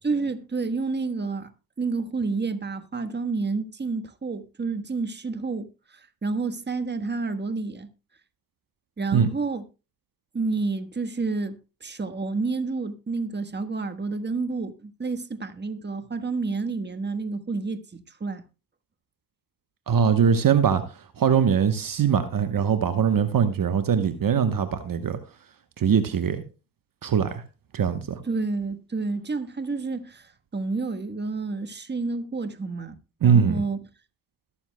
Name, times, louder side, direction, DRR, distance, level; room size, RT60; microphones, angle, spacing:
voice 1, 0.0-1.5 1.8-7.9 9.0-9.6 10.3-18.4 28.2-32.9 33.2-33.8, right 3 dB, 25° right, 1.3 m, -29 dB
voice 2, 19.9-25.2 25.8-26.4 27.0-27.4 27.7-28.2 33.2-33.6, right 7 dB, 50° right, 1.1 m, -22 dB
21.0 x 7.1 x 2.2 m
supercardioid pair, 50°, 43 cm